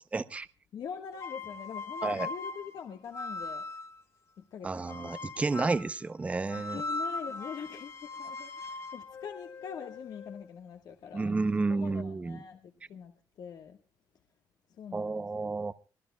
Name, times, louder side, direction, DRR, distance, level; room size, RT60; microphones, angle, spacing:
voice 1, 0.1-0.5 2.0-2.3 4.6-6.8 11.1-12.4 14.9-15.7, right 3 dB, 15° right, 14 dB, 0.6 m, -31 dB
voice 2, 0.7-3.6 4.4-5.5 6.7-11.4 11.7-13.8 14.7-15.7, left 7 dB, 60° left, 5 dB, 1.4 m, -44 dB
sound 1, 1.1-4.0 4.9-5.9 6.5-10.5, left 3 dB, 35° left, 1.6 m, -40 dB
25.0 x 18.0 x 2.2 m, 0.36 s
cardioid pair, 155°, 8 cm